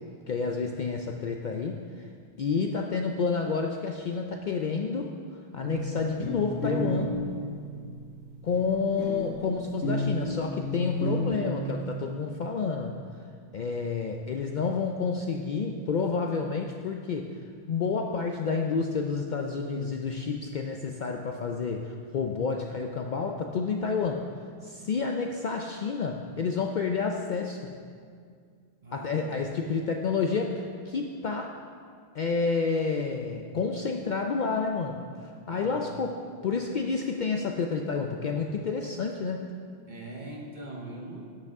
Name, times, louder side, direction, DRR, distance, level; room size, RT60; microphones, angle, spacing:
voice 1, 0.3-2.1 2.4-5.1 5.5-7.4 8.4-13.0 13.5-17.3 17.7-24.2 24.6-27.7 28.9-31.5 32.1-35.0 35.5-39.5, left 5 dB, 55° left, 2 dB, 0.6 m, -29 dB
sound 1, 5.6-11.3, left 1 dB, 85° left, 1.7 m, -32 dB
voice 2, 28.8-29.3 35.5-36.1 39.9-41.2, right 2 dB, 50° right, -1 dB, 1.0 m, -41 dB
12.0 x 7.8 x 3.6 m, 2.1 s
omnidirectional pair, 1.1 m